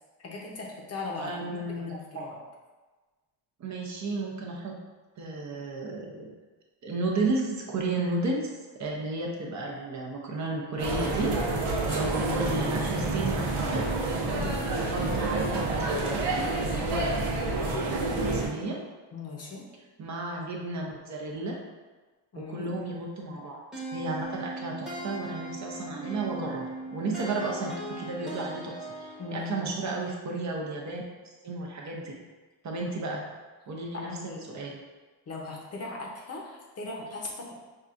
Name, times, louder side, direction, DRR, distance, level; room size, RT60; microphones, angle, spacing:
voice 1, 0.2-2.4 11.7-12.1 14.2-14.6 19.1-19.7 22.3-22.7 29.2-29.7 33.0-33.2 33.9-34.4 35.3-37.5, left 3 dB, 30° left, -1 dB, 0.7 m, -39 dB
voice 2, 1.2-2.2 3.6-4.8 5.2-6.3 6.8-8.5 8.8-11.4 11.9-13.9 14.8-18.8 20.0-21.6 22.4-23.6 23.9-31.0 31.4-32.2 32.6-33.2 33.7-34.8, right 2 dB, 35° right, -1 dB, 0.6 m, -33 dB
sound 1, 10.8-18.5, right 2 dB, 85° right, 1.0 m, -28 dB
sound 2, 23.7-29.5, right 1 dB, ahead, 0.9 m, -38 dB
5.5 x 2.4 x 2.5 m, 1.3 s
cardioid pair, 130°, 47 cm